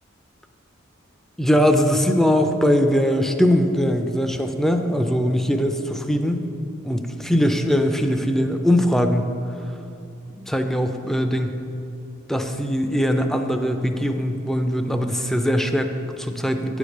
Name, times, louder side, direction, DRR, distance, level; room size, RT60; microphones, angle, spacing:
voice 1, 1.4-6.4 6.8-9.3 10.5-11.6 12.3-16.8, equal, ahead, 6 dB, 0.4 m, -21 dB
9.3 x 5.0 x 6.4 m, 2.7 s
head